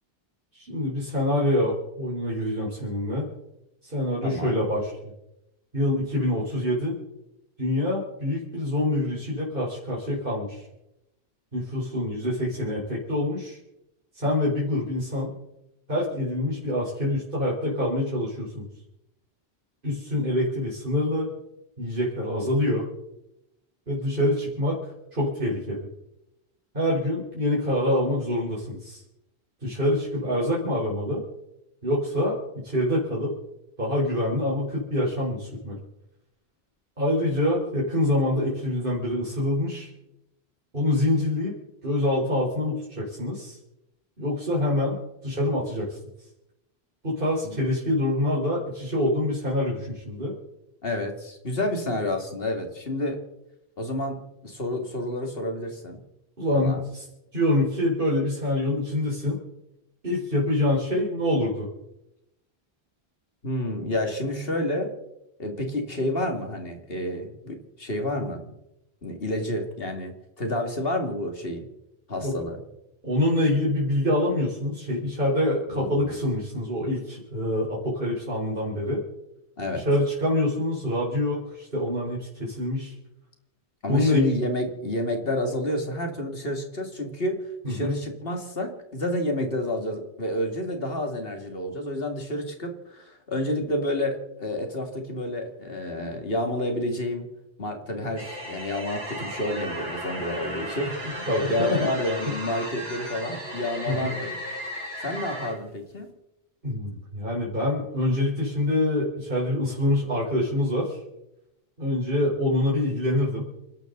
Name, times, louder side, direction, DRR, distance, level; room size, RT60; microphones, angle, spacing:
voice 1, 0.5-3.3 3.8-5.1 5.7-7.0 7.6-10.7 11.5-13.6 14.1-15.3 15.9-18.7 19.8-21.3 21.8-22.9 23.9-25.9 26.7-29.0 29.6-31.2 31.8-33.3 33.8-35.8 37.0-39.9 40.7-41.5 41.8-43.6 44.2-45.0 45.2-46.0 47.0-50.3 56.4-57.1 57.3-59.4 60.0-61.7 72.2-72.3 73.0-79.0 79.7-82.9 83.9-84.3 87.6-88.0 101.3-101.9 102.3-102.4 103.9-104.1 106.6-111.0 111.8-113.5, left 1 dB, 55° right, -6 dB, 4.6 m, -26 dB
voice 2, 4.2-4.6 47.4-47.6 50.8-53.2 53.8-56.0 56.5-56.8 63.4-64.9 65.4-68.5 69.0-71.6 72.1-72.6 75.7-76.1 79.6-79.8 83.8-97.3 97.6-104.4 105.0-106.1, left 1 dB, 65° left, 4 dB, 2.8 m, -29 dB
sound 1, 98.2-105.6, equal, 70° right, 5.9 m, -35 dB
29.5 x 12.0 x 4.0 m, 0.88 s
omnidirectional pair, 1.1 m